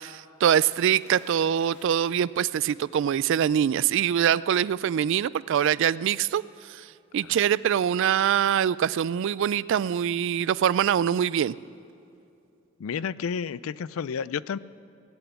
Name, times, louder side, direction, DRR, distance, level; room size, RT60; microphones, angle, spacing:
voice 1, 0.0-6.4 6.7-6.9 7.1-11.5, right 9 dB, 60° right, 19 dB, 0.3 m, -24 dB
Splash splatter, 0.6-2.4 3.4-3.5, left 2 dB, 60° left, 2.7 m, -53 dB
voice 2, 12.8-14.6, left 6 dB, 80° left, 18 dB, 0.4 m, -31 dB
17.5 x 8.1 x 9.3 m, 2.6 s
head